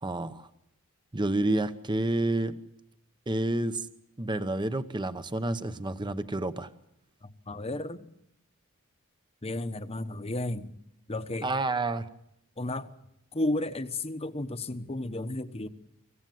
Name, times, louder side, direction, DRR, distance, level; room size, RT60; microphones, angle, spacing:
voice 1, 0.0-0.5 1.1-2.6 3.3-3.9 4.2-6.7 11.4-12.1, right 2 dB, 20° right, 11 dB, 0.9 m, -29 dB
voice 2, 7.2-8.1 9.4-10.8 11.1-11.5 12.6-12.9 13.3-15.7, left 2 dB, 25° left, 10 dB, 1.1 m, -33 dB
25.5 x 16.0 x 9.3 m, 0.80 s
head